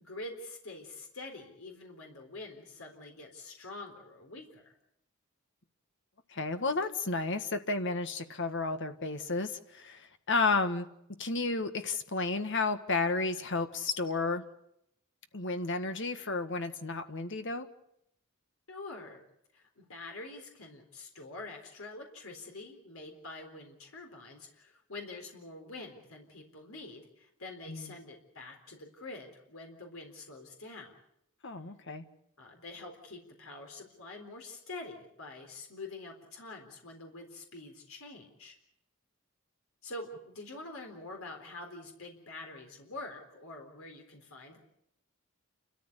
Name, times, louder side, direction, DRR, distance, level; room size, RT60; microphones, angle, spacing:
voice 1, 0.0-4.7 18.7-19.2 19.5-31.0 32.4-38.6 39.8-44.6, left 2 dB, 75° left, 2 dB, 4.0 m, -46 dB
voice 2, 6.3-10.9 11.2-14.4 15.3-17.7 27.7-27.9 31.4-32.1, left 3 dB, 60° left, 8 dB, 1.7 m, -32 dB
29.5 x 14.0 x 8.3 m, 0.77 s
head